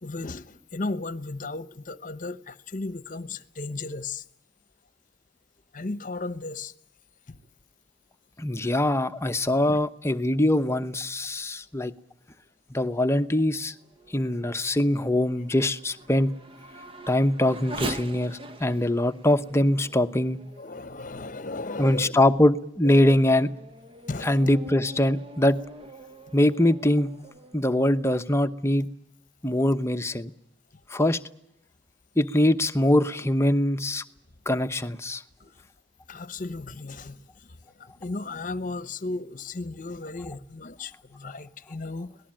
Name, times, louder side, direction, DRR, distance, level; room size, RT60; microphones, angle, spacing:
voice 1, 0.0-4.2 5.7-6.7 7.3-7.4 9.6-9.8 20.6-22.2 22.8-23.2 24.1-24.5 35.4-35.5 36.1-42.2, left 3 dB, 45° left, 1.0 m, -35 dB
voice 2, 8.4-11.9 12.7-13.7 14.1-16.3 17.1-20.4 21.8-23.5 24.2-25.6 26.3-27.1 27.5-28.9 29.4-30.3 30.9-31.2 32.2-34.0 34.5-35.2, left 1 dB, 15° left, 0.9 m, -23 dB
Race car auto racing / Accelerating revving vroom, 13.5-21.5 22.1-22.2 22.8-27.6, right 1 dB, 30° right, 1.1 m, -42 dB
26.0 x 19.0 x 8.9 m
head